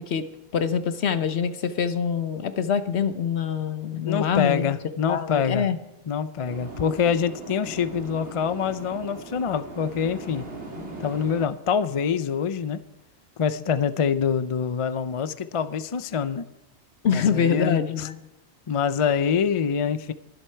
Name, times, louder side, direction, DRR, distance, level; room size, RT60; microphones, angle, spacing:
voice 1, 0.5-4.7 5.1-5.8 17.0-18.2, left 7 dB, 70° left, 11 dB, 1.2 m, -25 dB
voice 2, 4.0-5.7 6.1-10.4 11.0-12.8 13.4-16.4 17.1-18.1 18.7-20.1, left 7 dB, 40° left, 13 dB, 0.5 m, -25 dB
sound 1, 6.5-11.5, right 2 dB, 75° right, 2.7 m, -39 dB
22.5 x 8.0 x 4.5 m, 0.94 s
omnidirectional pair, 1.1 m